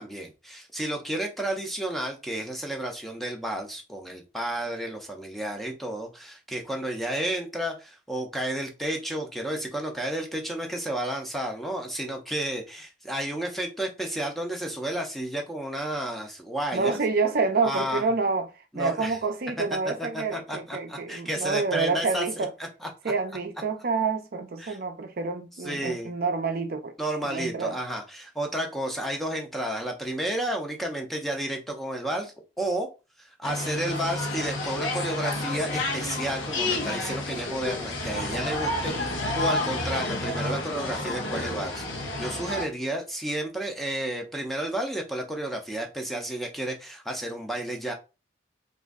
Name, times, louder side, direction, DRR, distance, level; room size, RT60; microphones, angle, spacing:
voice 1, 0.0-17.0 17.6-18.0 18.7-19.2 20.0-22.5 22.8-22.9 24.6-24.8 25.6-26.1 27.0-32.9 33.2-41.9 42.2-47.9, right 1 dB, ahead, 0.5 m, -32 dB
voice 2, 16.7-18.5 18.7-22.5 23.0-26.9 27.2-27.8, right 4 dB, 50° right, 0.5 m, -28 dB
sound 1, 33.4-42.6, left 2 dB, 75° left, 0.8 m, -30 dB
3.0 x 2.5 x 3.5 m
head